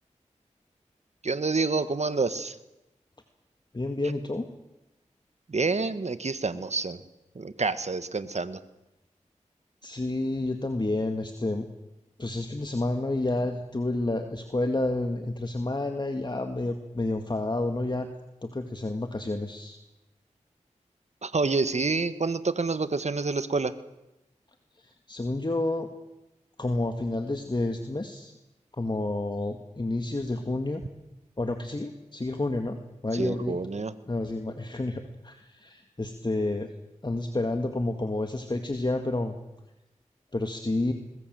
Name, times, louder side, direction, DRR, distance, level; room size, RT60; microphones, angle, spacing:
voice 1, 1.2-2.6 5.5-7.0 7.3-8.6 21.2-23.7 33.1-33.9, right 3 dB, 60° right, 12 dB, 1.6 m, -28 dB
voice 2, 3.7-4.4 9.8-11.7 12.2-18.1 18.4-19.8 24.8-25.9 26.6-28.3 28.8-30.8 31.4-32.8 33.0-33.6 34.1-36.7 37.0-39.4 40.3-40.9, left 2 dB, 35° left, 6 dB, 2.1 m, -30 dB
23.0 x 20.0 x 7.8 m, 0.95 s
cardioid pair, 40°, 13 cm